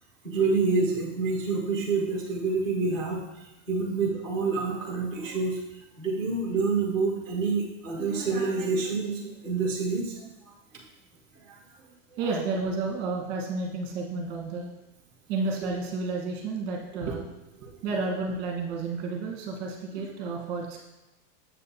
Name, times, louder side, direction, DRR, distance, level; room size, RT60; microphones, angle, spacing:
voice 1, 0.2-3.2 3.7-5.6 6.0-10.5 11.5-11.6, right 4 dB, 5° left, -4 dB, 0.6 m, -27 dB
voice 2, 12.2-14.7 15.3-17.3 17.6-20.8, right 3 dB, 30° right, 0 dB, 1.2 m, -31 dB
7.7 x 7.4 x 2.8 m, 0.98 s
supercardioid pair, 180°, 38 cm